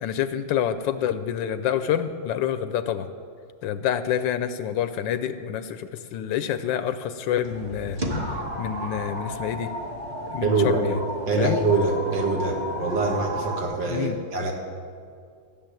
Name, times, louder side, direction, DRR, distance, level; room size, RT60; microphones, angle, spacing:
voice 1, 0.0-3.1 3.6-8.0 8.6-9.7 10.3-11.0 11.4-11.6 13.9-14.2, left 9 dB, 80° left, 11 dB, 1.3 m, -27 dB
sound 1, 7.4-13.6, equal, 25° right, 1.1 m, -33 dB
voice 2, 10.4-10.9 11.3-14.5, right 3 dB, 70° right, 1 dB, 2.3 m, -24 dB
14.5 x 7.0 x 9.0 m, 2.2 s
omnidirectional pair, 2.0 m